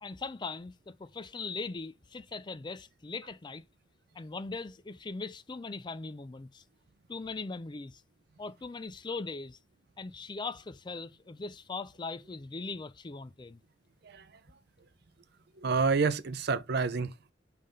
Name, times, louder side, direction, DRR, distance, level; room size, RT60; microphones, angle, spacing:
voice 1, 0.0-3.6 4.2-6.6 7.1-8.0 8.4-9.6 10.0-13.6, left 3 dB, 25° left, 0.4 m, -40 dB
voice 2, 15.6-17.3, right 4 dB, 60° right, 0.6 m, -29 dB
5.5 x 3.4 x 5.4 m
head